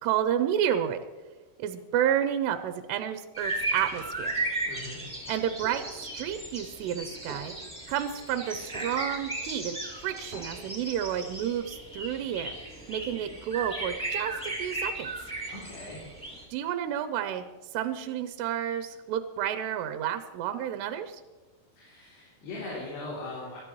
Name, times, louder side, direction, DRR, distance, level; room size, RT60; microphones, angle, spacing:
voice 1, 0.0-1.0 1.6-4.4 5.3-7.6 7.9-12.6 12.9-14.3 14.6-15.1 16.5-17.4 17.7-21.2, right 10 dB, 85° right, 8 dB, 2.8 m, -30 dB
sound 1, 3.3-16.4, right 2 dB, ahead, 2.5 m, -36 dB
voice 2, 4.7-5.0 15.5-16.0 21.8-23.6, left 2 dB, 85° left, -6 dB, 5.3 m, -40 dB
sound 2, 5.6-5.9 6.6-6.7 7.0-7.1 7.3-7.9 8.5-9.1 9.5-9.6 9.8-10.9, right 3 dB, 30° right, 7.1 m, -44 dB
23.5 x 13.0 x 3.1 m, 1.2 s
omnidirectional pair, 4.7 m